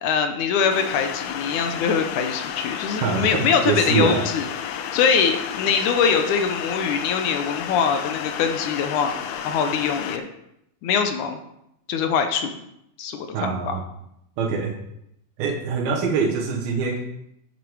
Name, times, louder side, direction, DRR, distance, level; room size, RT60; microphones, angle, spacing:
voice 1, 0.0-4.5 4.9-9.1 9.5-10.2 10.8-11.4 11.9-12.5 13.0-13.8, left 6 dB, 70° left, 6 dB, 2.0 m, -23 dB
sound 1, 0.7-10.2, left 9 dB, 90° left, 2.6 m, -32 dB
voice 2, 3.0-4.2 13.3-13.8 14.4-14.7 15.4-17.0, right 5 dB, 85° right, -1 dB, 3.0 m, -24 dB
9.4 x 8.0 x 4.7 m, 0.80 s
omnidirectional pair, 4.2 m